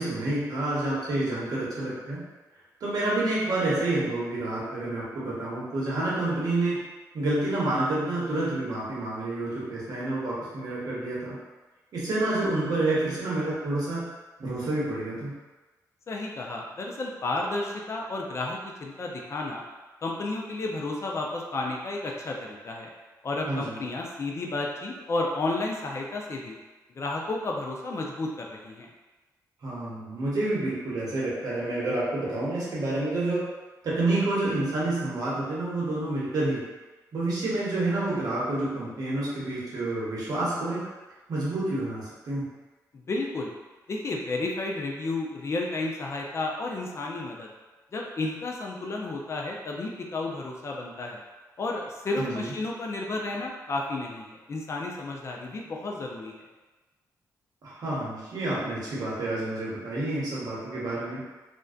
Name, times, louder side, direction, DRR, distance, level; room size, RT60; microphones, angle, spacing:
voice 1, 0.0-2.2 2.8-6.8 7.1-11.4 11.9-14.0 14.4-15.3 23.5-23.8 29.6-33.4 33.8-36.6 37.1-40.9 41.3-42.5 52.2-52.5 57.6-61.2, right 2 dB, 65° right, -7 dB, 0.9 m, -28 dB
voice 2, 16.1-19.6 20.0-22.9 23.2-26.6 27.0-28.9 42.9-43.5 43.9-47.5 47.9-51.2 51.6-56.4, left 2 dB, 45° left, 0 dB, 0.4 m, -32 dB
2.5 x 2.2 x 2.3 m, 1.2 s
cardioid pair, 85°, 7 cm